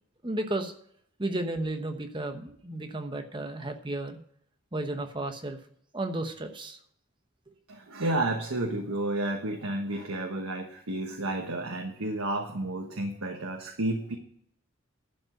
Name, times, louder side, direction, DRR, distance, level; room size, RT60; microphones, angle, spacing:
voice 1, 0.2-0.7 1.2-4.2 4.7-5.6 5.9-6.8, right 2 dB, 20° right, 6 dB, 1.0 m, -33 dB
voice 2, 7.7-14.2, right 2 dB, 90° right, 2 dB, 1.3 m, -31 dB
11.5 x 5.5 x 7.8 m, 0.66 s
head